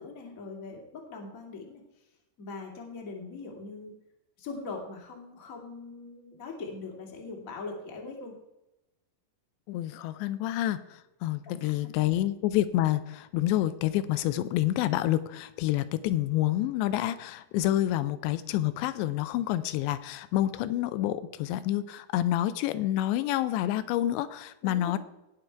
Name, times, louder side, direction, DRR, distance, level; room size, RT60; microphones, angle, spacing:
voice 1, 0.0-1.8 2.4-3.9 4.4-8.4 11.4-11.7 12.0-12.1 24.6-25.0, left 4 dB, 30° left, 0 dB, 1.8 m, -41 dB
voice 2, 9.7-25.0, left 14 dB, 85° left, 13 dB, 2.8 m, -28 dB
18.0 x 6.4 x 4.6 m, 0.93 s
omnidirectional pair, 5.0 m